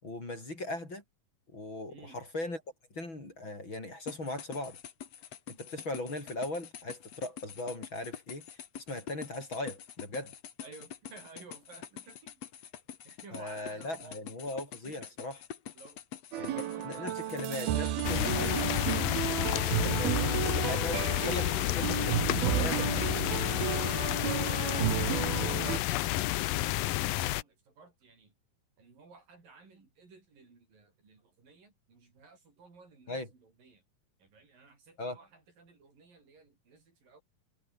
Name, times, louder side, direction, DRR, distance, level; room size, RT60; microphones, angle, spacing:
voice 1, 0.0-1.0 1.5-2.6 2.9-4.8 5.5-8.4 8.8-10.3 13.3-15.4 16.4-18.7 19.4-23.0 33.1-33.3 35.0-35.2, left 2 dB, 30° left, 7.2 m, -39 dB
voice 2, 1.9-2.2 10.6-12.4 13.0-14.3 14.9-15.1 15.8-16.0 16.3-18.4 24.7-28.3 28.8-33.8 34.2-37.2, right 4 dB, 65° right, 8.3 m, -55 dB
sound 1, 4.1-19.0, left 9 dB, 55° left, 2.5 m, -46 dB
sound 2, 16.3-25.8, right 12 dB, 90° right, 3.4 m, -33 dB
sound 3, 18.0-27.4, left 16 dB, 75° left, 2.5 m, -30 dB
omnidirectional pair, 4.2 m